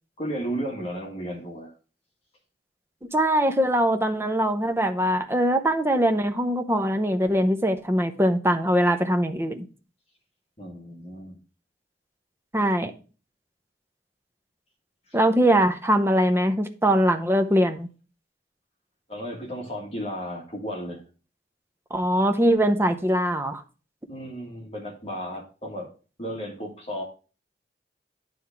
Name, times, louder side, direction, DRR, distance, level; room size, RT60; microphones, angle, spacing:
voice 1, 0.2-1.7 10.6-11.4 15.1-15.2 19.1-21.0 24.1-25.9 26.2-27.0, equal, 35° left, 1.8 m, -34 dB
voice 2, 3.1-9.6 12.5-12.9 15.1-17.9 21.9-23.6, equal, 15° right, 0.7 m, -22 dB
9.6 x 3.5 x 5.8 m
head